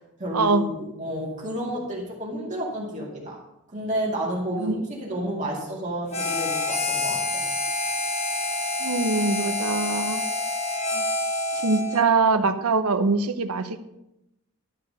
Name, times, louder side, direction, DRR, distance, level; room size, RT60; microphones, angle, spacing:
voice 1, 0.0-3.4 3.7-7.4, right 1 dB, 35° right, -3 dB, 2.3 m, -31 dB
Harmonica, 6.1-12.1, left 2 dB, 30° left, 1.3 m, -27 dB
voice 2, 8.8-10.2 10.9-11.0 11.6-13.9, right 3 dB, 80° right, 10 dB, 0.8 m, -23 dB
12.5 x 4.8 x 6.7 m, 0.86 s
head